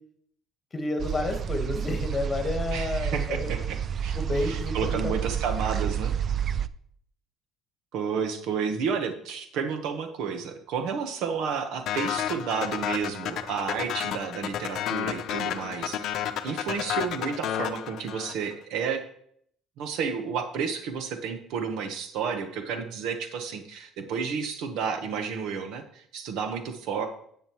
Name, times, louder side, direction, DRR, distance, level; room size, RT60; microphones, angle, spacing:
voice 1, 0.7-3.5 4.1-4.8 5.0-5.1, left 2 dB, 20° left, 4 dB, 1.3 m, -30 dB
sound 1, 1.0-6.7, right 8 dB, 35° right, 0.3 m, -30 dB
voice 2, 2.7-3.8 4.0-6.1 7.9-19.0 19.8-27.1, right 6 dB, 70° right, 7 dB, 1.0 m, -31 dB
sound 2, 11.9-18.5, left 10 dB, 60° left, 0.7 m, -31 dB
10.0 x 7.8 x 3.0 m, 0.66 s
cardioid pair, 135°, 0 cm